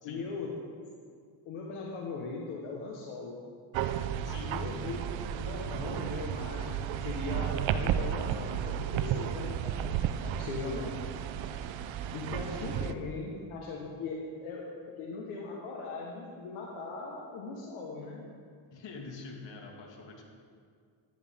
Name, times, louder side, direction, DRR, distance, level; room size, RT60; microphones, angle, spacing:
voice 1, 0.0-0.5 1.4-3.4 4.5-11.1 12.1-18.3, left 3 dB, 85° left, -2 dB, 1.4 m, -39 dB
sound 1, 3.7-12.9, right 9 dB, 70° right, 0.6 m, -33 dB
voice 2, 18.7-20.2, left 4 dB, 60° left, 1 dB, 2.1 m, -45 dB
11.5 x 10.5 x 3.6 m, 2.1 s
cardioid pair, 85°, 48 cm